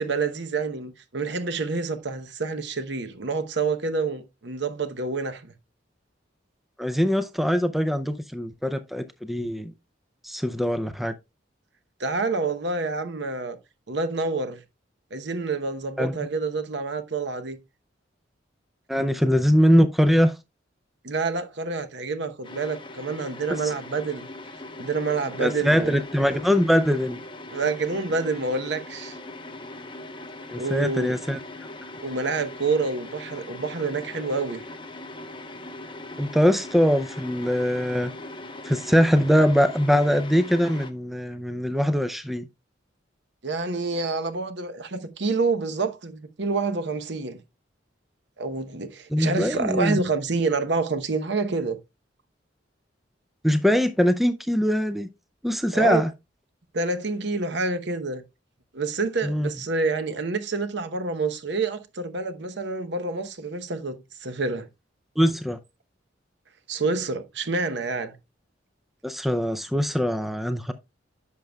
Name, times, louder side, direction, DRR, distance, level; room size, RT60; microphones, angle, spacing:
voice 1, 0.0-5.5 12.0-13.6 13.9-14.6 15.1-17.6 21.0-24.3 24.8-26.0 27.5-29.2 30.6-31.2 32.0-34.6 43.4-47.4 48.4-51.8 55.7-56.0 56.7-58.2 58.7-64.0 64.2-64.7 66.7-68.2, right 4 dB, 65° right, 0.9 m, -28 dB
voice 2, 6.8-9.7 10.2-11.1 16.0-16.2 18.9-20.3 23.5-23.6 25.4-27.2 30.5-31.4 36.2-38.1 38.6-42.5 49.1-50.0 53.4-55.1 55.4-56.1 59.2-59.5 65.2-65.6 69.0-70.7, equal, ahead, 0.4 m, -22 dB
sound 1, 22.4-40.9, left 2 dB, 25° left, 0.9 m, -40 dB
10.5 x 6.5 x 2.3 m
head